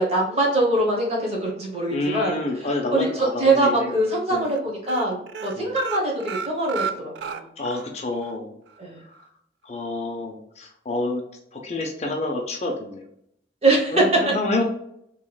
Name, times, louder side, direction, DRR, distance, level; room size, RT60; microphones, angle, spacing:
voice 1, 0.0-7.5 8.8-9.0 13.6-14.0, right 2 dB, 35° right, -2 dB, 1.1 m, -23 dB
voice 2, 1.9-3.9 4.3-4.5 5.6-5.7 7.6-8.5 9.6-11.2 11.5-13.0 13.9-14.6, left 2 dB, 35° left, 2 dB, 0.5 m, -28 dB
sound 1, 3.0-3.6 3.9-4.1 4.4-4.6 4.8-7.9 8.2-8.3 8.7-8.8, right 6 dB, 70° right, 0.3 m, -33 dB
3.5 x 3.0 x 2.3 m, 0.74 s
head